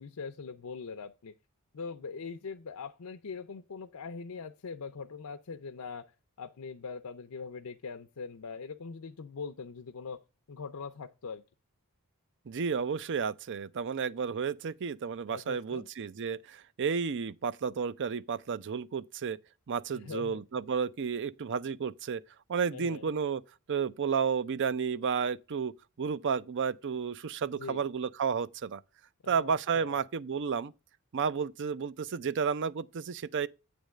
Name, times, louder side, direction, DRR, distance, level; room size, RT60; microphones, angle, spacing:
voice 1, 0.0-1.3 1.7-6.1 6.4-10.2 10.5-11.4 15.3-15.9 19.9-20.4 22.7-23.0 27.5-27.9 29.2-30.1, left 5 dB, 80° left, 0.6 m, -42 dB
voice 2, 12.5-19.4 19.7-22.2 22.5-23.4 23.7-25.7 26.0-28.8 29.3-30.7 31.1-33.5, right 6 dB, 55° right, 0.5 m, -32 dB
8.9 x 3.5 x 6.3 m
head